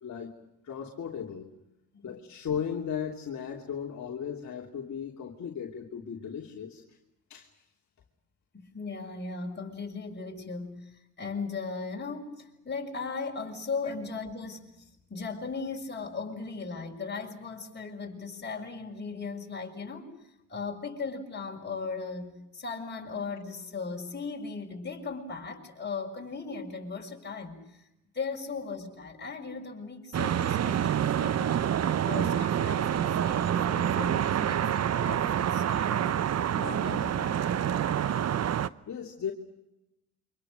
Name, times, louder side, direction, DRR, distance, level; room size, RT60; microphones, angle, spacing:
voice 1, 0.0-0.3 0.6-1.5 2.0-6.8 7.3-7.5 38.9-39.3, left 8 dB, 55° left, -1 dB, 3.2 m, -36 dB
voice 2, 8.5-20.1 20.5-27.6 28.1-31.6 32.0-36.0 36.5-37.4, left 4 dB, 30° left, 1 dB, 6.5 m, -38 dB
sound 1, 30.1-38.7, right 9 dB, 50° right, 0.9 m, -27 dB
28.5 x 26.0 x 6.5 m, 0.88 s
cardioid pair, 80°, 33 cm